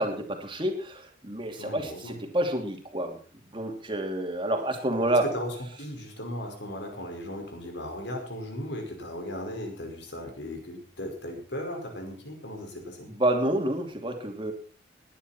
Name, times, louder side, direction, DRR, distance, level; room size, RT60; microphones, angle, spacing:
voice 1, 0.0-3.2 3.5-5.3 13.1-14.5, right 1 dB, 25° right, 4 dB, 2.8 m, -28 dB
voice 2, 1.6-2.2 5.2-13.1, left 1 dB, 65° left, 3 dB, 5.3 m, -37 dB
20.0 x 10.5 x 4.4 m, 0.39 s
head